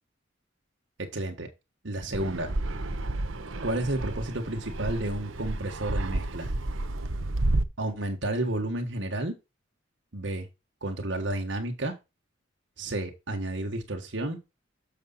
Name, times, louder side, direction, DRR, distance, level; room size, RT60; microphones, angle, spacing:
voice 1, 1.0-1.5 1.8-2.5 3.6-6.5 7.8-9.3 10.1-10.5 10.8-12.0 12.8-14.4, right 1 dB, 70° right, 1.5 m, -31 dB
Fixed-wing aircraft airplane, 2.1-7.6, right 2 dB, 85° right, 1.0 m, -31 dB
6.8 x 6.5 x 4.1 m
head